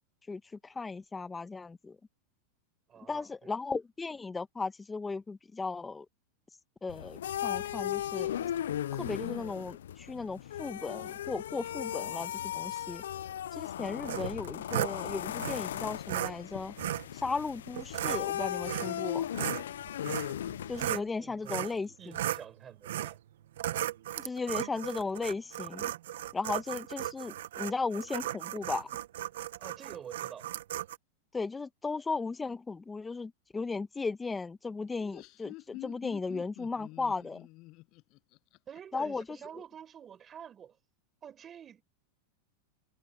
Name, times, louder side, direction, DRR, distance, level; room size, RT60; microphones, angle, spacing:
voice 1, 0.3-2.0 3.1-6.0 6.8-8.3 9.0-13.0 13.5-16.7 17.1-19.3 20.7-22.1 24.2-25.9 26.3-28.9 31.3-37.5 38.9-39.4, left 4 dB, 15° left, 1.2 m, -36 dB
voice 2, 2.9-3.5 21.2-21.7 22.0-23.2 29.6-30.5 38.7-40.8 41.2-41.8, right 8 dB, 25° right, 4.6 m, -48 dB
sound 1, 6.9-21.0, left 11 dB, 85° left, 0.4 m, -37 dB
sound 2, 14.0-14.9 15.4-15.6 16.1-16.3 16.8-17.1 17.7-18.2 18.6-19.0 19.3-21.1 21.5-21.8 22.1-22.4 22.8-23.2 23.6-31.0, right 13 dB, 80° right, 1.0 m, -35 dB
Laughter, 34.9-39.5, left 22 dB, 50° left, 5.8 m, -48 dB
supercardioid pair, 125°, 0 cm